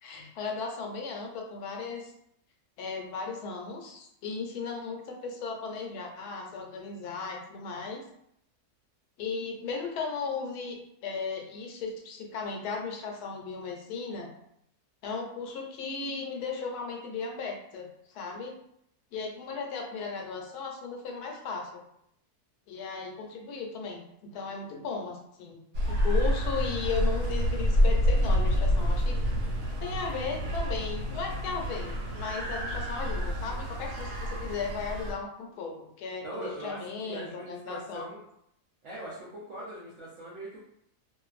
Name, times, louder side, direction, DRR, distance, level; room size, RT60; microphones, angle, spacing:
voice 1, 0.0-2.1 2.8-8.0 9.2-14.3 15.0-18.5 19.1-21.8 22.7-25.6 25.9-29.2 29.8-38.1, left 4 dB, 75° left, 1 dB, 1.1 m, -36 dB
sound 1, 25.7-35.1, equal, 85° right, 1.2 m, -28 dB
voice 2, 36.2-38.2 38.8-40.6, right 1 dB, 60° right, -7 dB, 0.9 m, -41 dB
2.5 x 2.4 x 2.3 m, 0.74 s
omnidirectional pair, 1.7 m